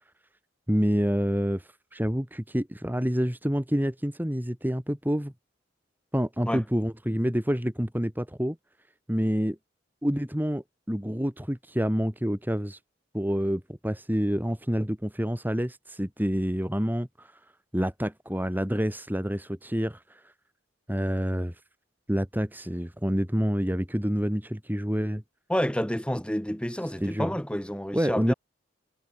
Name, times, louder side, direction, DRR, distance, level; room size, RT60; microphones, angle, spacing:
voice 1, 0.7-5.3 6.1-8.6 9.1-9.6 10.0-12.8 13.1-17.3 17.7-20.2 20.9-21.5 22.1-25.2 27.0-27.3 27.9-28.3, equal, 10° right, 2.6 m, -28 dB
voice 2, 25.5-28.3, equal, 5° left, 3.3 m, -29 dB
head